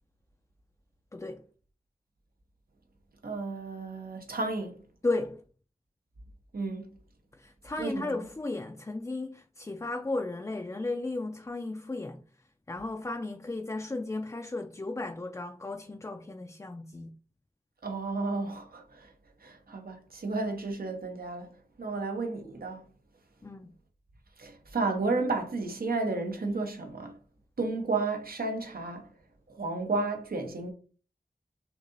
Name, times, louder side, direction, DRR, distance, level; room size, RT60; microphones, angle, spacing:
voice 1, 1.1-1.4 5.0-5.4 7.4-12.2 12.7-17.1 23.4-23.7, left 2 dB, 20° left, 0.4 m, -35 dB
voice 2, 3.2-4.8 6.5-6.9 7.8-8.2 17.8-19.1 19.4-21.5 21.8-22.8 24.4-27.1 27.6-29.1 29.5-30.7, right 3 dB, 80° right, 1.0 m, -32 dB
6.0 x 2.9 x 2.6 m
wide cardioid pair, 75°, 15 cm